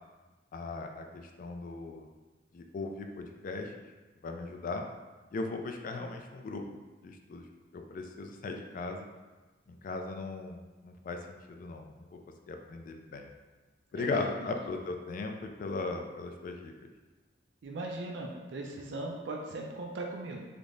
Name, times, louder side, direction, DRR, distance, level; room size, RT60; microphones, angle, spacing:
voice 1, 0.5-2.1 2.5-3.7 4.2-4.9 5.3-6.6 7.0-7.5 7.7-9.1 9.7-12.2 12.5-13.3 13.9-16.9, left 3 dB, 45° left, 3 dB, 0.3 m, -38 dB
voice 2, 14.0-14.5 17.6-20.4, right 2 dB, 70° right, 0 dB, 0.4 m, -39 dB
3.3 x 2.1 x 3.7 m, 1.2 s
head